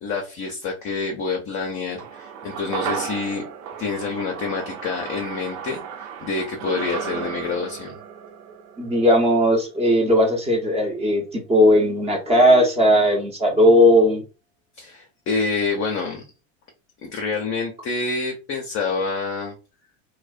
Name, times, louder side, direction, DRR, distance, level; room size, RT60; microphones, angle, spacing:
voice 1, 0.0-3.4 3.8-7.9 14.8-16.2 17.0-19.5, left 4 dB, 35° left, 1 dB, 0.5 m, -27 dB
sound 1, 2.0-10.5 10.8-10.9, right 7 dB, 70° right, 0.7 m, -35 dB
voice 2, 8.8-14.2, equal, 15° right, 2 dB, 0.7 m, -17 dB
2.4 x 2.1 x 2.4 m, 0.32 s
supercardioid pair, 115°, 40 cm